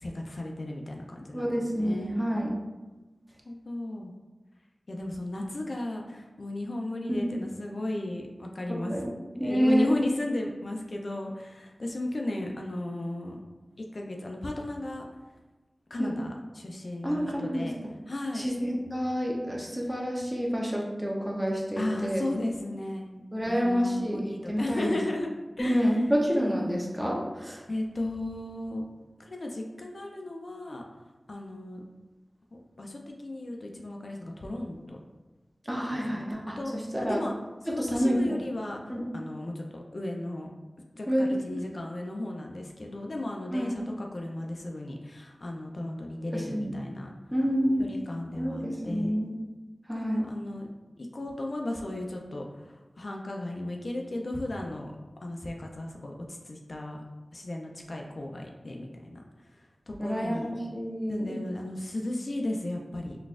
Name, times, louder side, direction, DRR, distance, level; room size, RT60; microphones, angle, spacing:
voice 1, 0.0-2.5 3.5-4.1 4.9-8.9 9.4-13.4 13.8-15.1 15.9-17.7 18.1-18.5 21.8-25.3 25.6-26.0 27.7-28.8 29.2-30.8 31.3-31.8 32.5-35.0 35.9-36.3 36.6-36.7 37.0-37.3 37.6-38.8 39.1-40.5 40.9-47.1 47.8-49.2 49.9-50.7 51.0-55.0 55.2-57.0 57.3-59.2 59.5-60.5 61.1-63.2, left 1 dB, 65° left, 1 dB, 0.4 m, -35 dB
voice 2, 1.3-2.5 7.1-7.3 8.7-9.1 9.4-9.9 16.0-16.1 17.0-17.7 18.3-22.2 23.3-24.2 24.5-24.9 25.6-27.6 35.7-36.6 36.9-37.2 37.8-38.4 38.9-39.1 41.1-41.4 43.5-43.7 46.3-46.7 47.3-47.9 48.3-49.3 49.9-50.3 60.0-61.4, equal, 10° right, -2 dB, 0.7 m, -28 dB
4.0 x 2.3 x 2.4 m, 1.2 s
cardioid pair, 40°, 0 cm